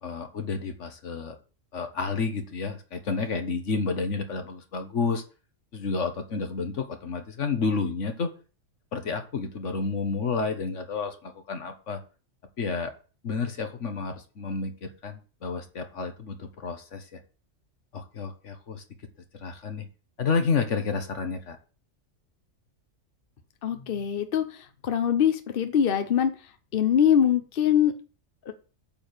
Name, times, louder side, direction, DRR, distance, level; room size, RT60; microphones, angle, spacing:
voice 1, 0.0-1.3 1.7-5.2 5.7-8.3 8.9-12.0 12.6-12.9 13.2-17.2 17.9-18.8 19.3-19.9 20.2-21.6, left 4 dB, 70° left, 7 dB, 1.6 m, -30 dB
voice 2, 23.6-27.9 28.4-28.5, left 9 dB, 50° left, 8 dB, 1.0 m, -23 dB
8.7 x 4.6 x 6.7 m, 0.36 s
omnidirectional pair, 1.3 m